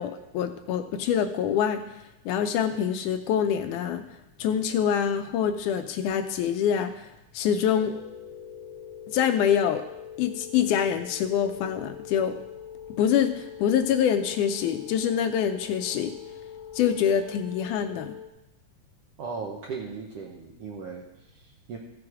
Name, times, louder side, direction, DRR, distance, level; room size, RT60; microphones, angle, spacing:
voice 1, 0.0-1.8 2.3-4.0 4.4-7.0 7.3-8.0 9.1-9.8 10.2-12.3 13.0-16.1 16.7-18.2, left 8 dB, 80° left, 8 dB, 1.9 m, -25 dB
sound 1, 7.8-18.3, left 8 dB, 60° left, 1.3 m, -43 dB
voice 2, 19.2-21.8, right 5 dB, 75° right, 0 dB, 1.4 m, -37 dB
14.5 x 6.2 x 4.8 m, 0.93 s
omnidirectional pair, 3.8 m